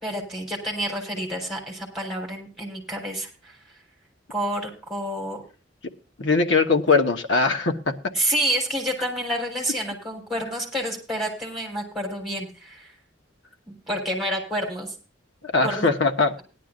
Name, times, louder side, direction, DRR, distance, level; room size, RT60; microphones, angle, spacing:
voice 1, 0.0-3.6 4.3-5.4 8.1-12.9 13.7-14.9 15.6-15.9, right 1 dB, ahead, 4.1 m, -29 dB
voice 2, 6.2-8.0 15.5-16.4, left 4 dB, 70° left, 1.3 m, -21 dB
18.0 x 11.5 x 2.6 m
head